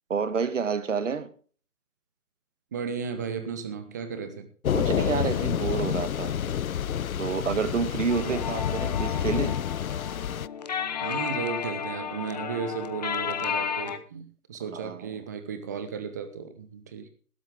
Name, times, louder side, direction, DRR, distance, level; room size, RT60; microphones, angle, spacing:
voice 1, 0.1-1.3 4.7-6.3 7.2-9.6 14.7-15.1, right 5 dB, 55° right, 1.6 m, -29 dB
voice 2, 2.7-4.5 8.1-8.4 11.0-17.1, right 6 dB, 10° right, 0.8 m, -35 dB
Thunder / Rain, 4.6-10.5, left 9 dB, 70° left, 0.5 m, -28 dB
sound 1, 8.1-14.0, left 7 dB, 30° left, 0.9 m, -33 dB
13.5 x 12.5 x 3.7 m
figure-of-eight pair, 145°, 44 cm